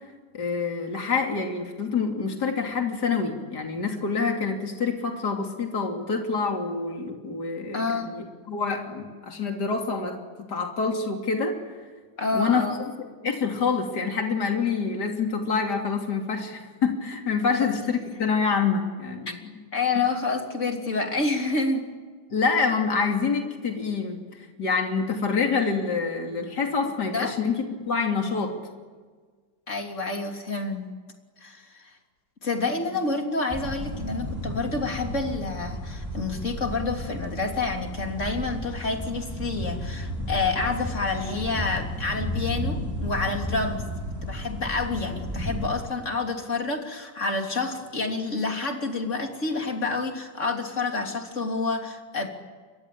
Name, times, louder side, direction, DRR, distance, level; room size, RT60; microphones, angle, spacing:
voice 1, 0.3-10.2 10.5-11.6 12.3-12.7 13.2-19.6 22.3-28.5, left 5 dB, 60° left, 2 dB, 3.5 m, -26 dB
voice 2, 7.7-8.1 12.2-12.8 19.7-21.9 27.1-27.3 29.7-30.9 31.4-31.9 32.4-43.9 44.2-52.3, left 3 dB, 40° left, 3 dB, 3.6 m, -28 dB
sound 1, 33.5-45.7, equal, 10° right, 5.7 m, -33 dB
30.0 x 23.0 x 8.7 m, 1.5 s
omnidirectional pair, 2.0 m